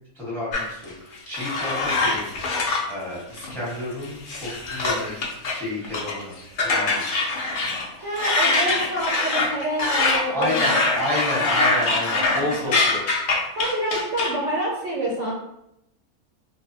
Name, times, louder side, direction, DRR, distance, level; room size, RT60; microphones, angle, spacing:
voice 1, 0.1-2.5 2.9-6.3 6.6-7.0 10.3-13.0, left 1 dB, ahead, -7 dB, 0.8 m, -30 dB
sound 1, 0.5-2.9 3.4-3.7 4.0-5.5 5.8-6.2 6.6-7.9 8.1-14.3, left 3 dB, 85° left, 0.4 m, -23 dB
voice 2, 8.0-10.9 11.4-12.8 13.6-15.3, right 1 dB, 65° right, -5 dB, 0.8 m, -28 dB
2.5 x 2.3 x 2.5 m, 0.81 s
omnidirectional pair, 1.5 m